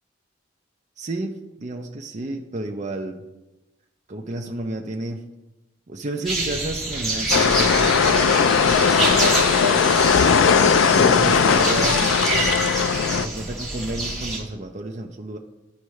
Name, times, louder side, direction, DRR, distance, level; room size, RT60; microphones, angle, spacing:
voice 1, 1.0-3.3 4.1-5.2 5.9-9.9 10.7-12.1 13.1-15.4, right 2 dB, 40° right, 2 dB, 0.6 m, -31 dB
sound 1, 6.2-14.4, right 2 dB, ahead, 2.0 m, -26 dB
sound 2, 7.3-13.3, left 6 dB, 85° left, 0.4 m, -18 dB
13.0 x 4.6 x 3.2 m, 1.0 s
head